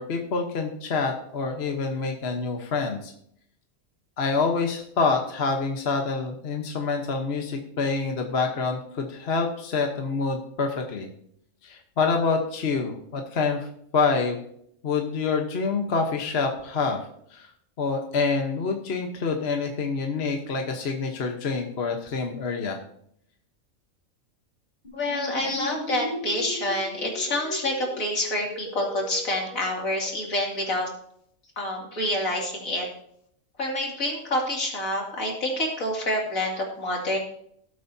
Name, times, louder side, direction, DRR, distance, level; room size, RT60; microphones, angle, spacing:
voice 1, 0.0-3.1 4.2-11.1 11.6-13.7 13.9-14.4 14.8-17.0 17.3-17.5 17.8-22.8, left 4 dB, 50° left, 3 dB, 1.3 m, -26 dB
sound 1, 24.8-30.2, left 1 dB, 30° left, 3.5 m, -37 dB
voice 2, 24.9-30.9 31.6-32.9 33.6-37.2, left 1 dB, 75° left, -1 dB, 2.9 m, -27 dB
18.5 x 8.2 x 2.7 m, 0.68 s
omnidirectional pair, 1.5 m